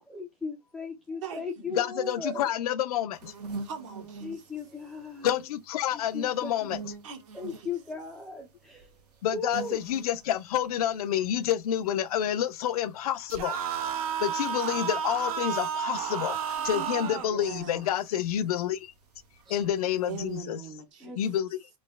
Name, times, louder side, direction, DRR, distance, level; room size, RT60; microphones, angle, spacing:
voice 1, 0.1-2.5 4.2-5.4 6.1-6.8 7.3-8.9 9.3-9.8 16.6-17.2 19.5-19.6 21.0-21.2, left 3 dB, ahead, 0.4 m, -37 dB
voice 2, 1.8-3.3 5.2-6.8 9.2-13.6 14.2-18.9 19.5-20.6 21.2-21.6, left 10 dB, 65° left, 0.5 m, -29 dB
sound 1, 3.1-20.4, right 3 dB, 90° right, 1.3 m, -48 dB
voice 3, 3.6-4.3 7.0-7.7 17.3-17.9 20.1-21.1, right 7 dB, 50° right, 1.1 m, -40 dB
sound 2, 13.3-17.3, right 8 dB, 65° right, 0.8 m, -31 dB
3.1 x 2.7 x 3.3 m
supercardioid pair, 155°, 20 cm